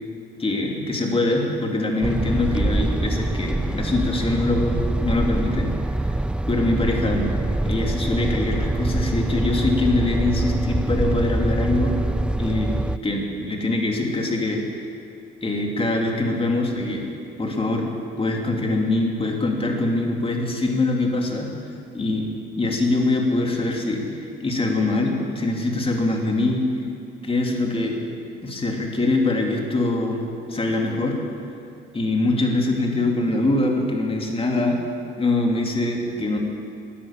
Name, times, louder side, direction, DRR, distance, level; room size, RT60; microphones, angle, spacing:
voice 1, 0.4-5.7 6.5-12.0 12.4-14.6 15.4-17.1 17.4-17.9 18.2-21.5 21.9-22.3 22.6-26.7 27.2-28.0 28.4-30.2 30.5-31.2 31.9-34.8 35.2-36.4, left 2 dB, 30° left, 1 dB, 2.6 m, -23 dB
sound 1, 2.0-13.0, right 1 dB, 5° right, 0.3 m, -24 dB
14.0 x 9.8 x 8.9 m, 2.4 s
cardioid pair, 90°, 20 cm